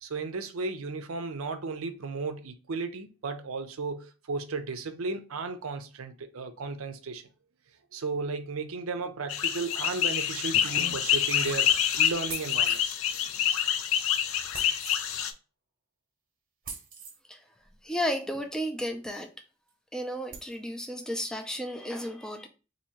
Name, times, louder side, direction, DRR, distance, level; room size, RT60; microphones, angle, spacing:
voice 1, 0.0-7.2 7.9-12.8, right 4 dB, 80° right, 0.5 m, -34 dB
sound 1, 9.3-15.3, left 9 dB, 75° left, 0.4 m, -27 dB
sound 2, 12.3-13.0 14.5-15.0 16.6-17.2 19.1-19.2 19.7-19.8 20.3-20.5, right 5 dB, 40° right, 0.8 m, -42 dB
voice 2, 17.8-19.3 19.9-22.5, equal, 5° left, 0.4 m, -33 dB
2.8 x 2.7 x 4.2 m
head